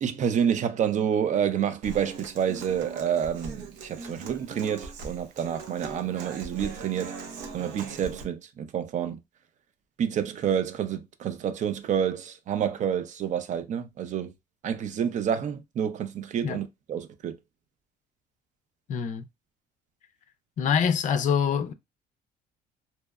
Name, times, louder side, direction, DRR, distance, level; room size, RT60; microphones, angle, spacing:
voice 1, 0.0-7.1 7.5-9.2 10.0-14.3 14.6-17.4, right 8 dB, 45° right, 0.4 m, -28 dB
Human voice / Acoustic guitar, 1.8-8.2, right 4 dB, 85° right, 0.6 m, -41 dB
voice 2, 18.9-19.2 20.6-21.7, left 7 dB, 50° left, 0.4 m, -25 dB
2.7 x 2.0 x 2.3 m
cardioid pair, 110°, 17 cm